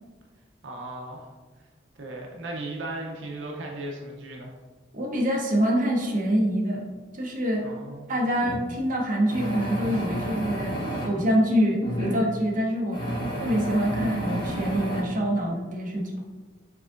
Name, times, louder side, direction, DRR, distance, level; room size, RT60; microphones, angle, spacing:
voice 1, 0.6-1.3 2.0-4.5 7.6-8.1, right 2 dB, 80° right, 0 dB, 0.6 m, -36 dB
voice 2, 4.9-6.8 7.1-7.6 8.1-10.7 11.0-13.0 13.4-16.2, equal, 45° right, -1 dB, 0.8 m, -25 dB
sound 1, 8.4-8.6 9.3-11.1 11.8-12.2 12.9-15.0, right 1 dB, 25° left, 1.1 m, -30 dB
4.7 x 3.7 x 2.4 m, 1.3 s
head